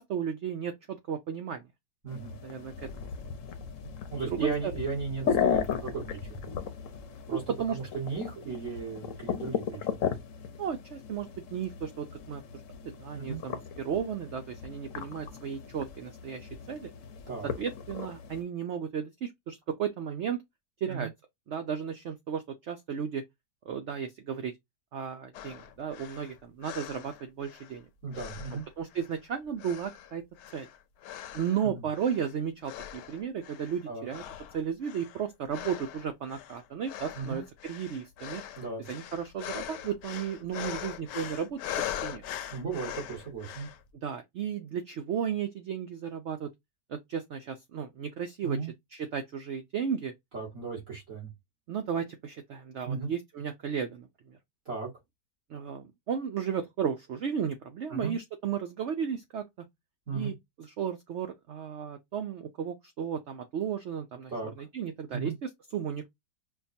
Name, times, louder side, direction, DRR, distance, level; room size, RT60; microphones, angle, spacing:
voice 1, 0.0-1.7 2.4-3.1 4.3-4.5 7.6-7.8 10.6-12.4 12.8-16.9 17.6-20.4 20.8-21.1 21.5-23.2 23.7-24.5 24.9-27.9 28.8-30.2 30.5-30.7 31.3-34.2 34.5-38.4 38.9-42.2 44.0-46.5 46.9-50.1 51.7-54.4 55.5-59.4 60.1-64.3 64.6-66.1, right 7 dB, 90° right, 0.6 m, -34 dB
voice 2, 2.0-2.3 4.1-6.5 7.3-7.4 7.7-10.1 13.1-13.4 17.3-17.5 20.9-21.1 28.0-28.6 31.6-31.8 33.9-34.1 37.1-37.4 38.6-38.9 42.5-43.7 48.4-48.7 50.3-51.3 52.9-53.1 54.7-54.9 57.9-58.2 60.1-60.3 64.3-64.7 65.1-65.4, right 5 dB, 50° right, 1.9 m, -35 dB
sound 1, 2.1-18.4, left 7 dB, 60° left, 0.9 m, -36 dB
sound 2, 25.3-27.8 28.1-29.3 29.6-31.7 31.9-32.3 32.6-33.8 34.1-43.8, left 11 dB, 80° left, 1.2 m, -41 dB
5.5 x 2.3 x 2.6 m
omnidirectional pair, 1.8 m